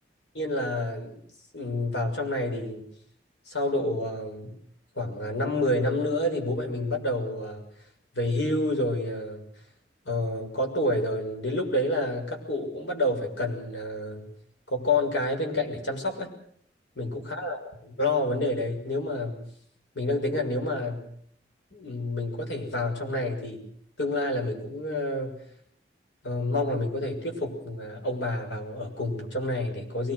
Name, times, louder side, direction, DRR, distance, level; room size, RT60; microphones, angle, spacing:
voice 1, 0.3-1.2 1.5-2.9 3.5-4.6 4.9-7.6 8.1-9.4 10.0-14.3 14.7-16.3 17.0-19.4 19.9-21.0 21.7-23.6 24.0-25.4 26.2-30.1, left 1 dB, 85° left, 4 dB, 6.5 m, -29 dB
24.0 x 20.5 x 6.6 m, 0.66 s
head